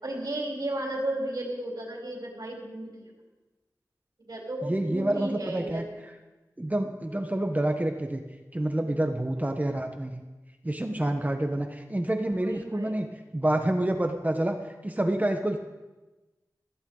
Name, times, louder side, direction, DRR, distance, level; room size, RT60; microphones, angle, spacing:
voice 1, 0.0-3.1 4.3-5.9 12.3-12.9, right 1 dB, 65° right, -2 dB, 4.1 m, -34 dB
voice 2, 4.6-5.8 6.6-8.2 8.5-10.2 10.6-13.1 13.3-14.5 14.8-15.6, right 1 dB, 20° right, 5 dB, 1.2 m, -28 dB
17.0 x 15.0 x 4.0 m, 1.2 s
wide cardioid pair, 60°, 7 cm